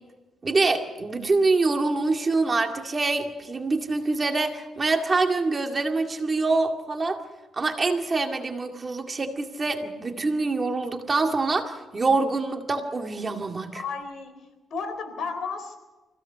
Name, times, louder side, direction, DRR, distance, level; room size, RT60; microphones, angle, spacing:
voice 1, 0.4-7.2 7.5-13.8, right 3 dB, 30° right, 4 dB, 2.1 m, -25 dB
voice 2, 13.7-14.4 14.7-15.8, left 5 dB, 65° left, 7 dB, 3.7 m, -33 dB
25.0 x 16.5 x 6.8 m, 1.1 s
cardioid pair, 95°, 0 cm